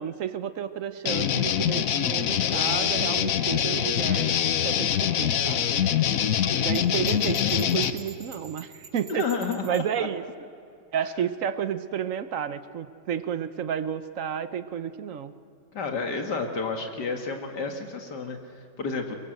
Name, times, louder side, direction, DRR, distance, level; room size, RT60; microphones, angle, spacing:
voice 1, 0.0-4.3 4.6-5.7 6.6-9.3 9.6-10.2 10.9-15.3, right 9 dB, 55° right, 12 dB, 1.1 m, -31 dB
sound 1, 1.1-7.9, left 9 dB, 60° left, 1.1 m, -24 dB
Bell, 6.7-9.9, right 5 dB, 75° right, 5.9 m, -47 dB
voice 2, 9.1-10.1 15.7-19.2, left 4 dB, 75° left, 4 dB, 2.3 m, -31 dB
22.5 x 22.0 x 7.8 m, 2.5 s
omnidirectional pair, 1.8 m